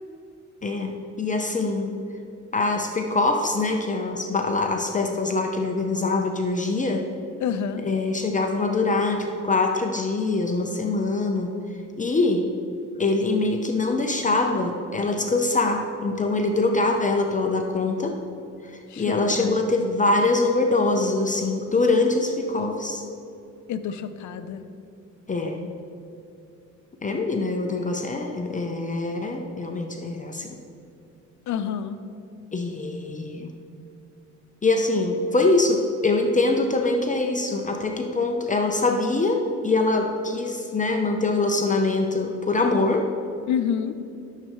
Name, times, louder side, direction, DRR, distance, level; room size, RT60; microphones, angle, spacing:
voice 1, 0.6-2.0 2.5-7.0 7.8-11.5 12.0-12.5 13.0-18.2 18.6-23.0 25.3-25.7 27.0-30.6 32.5-33.5 34.6-43.1, left 3 dB, 25° left, 3 dB, 0.7 m, -24 dB
voice 2, 7.4-7.8 18.9-19.7 23.7-24.6 31.5-32.0 43.5-44.0, left 8 dB, 70° left, 10 dB, 0.7 m, -28 dB
13.5 x 6.7 x 3.1 m, 2.6 s
cardioid pair, 90°, 30 cm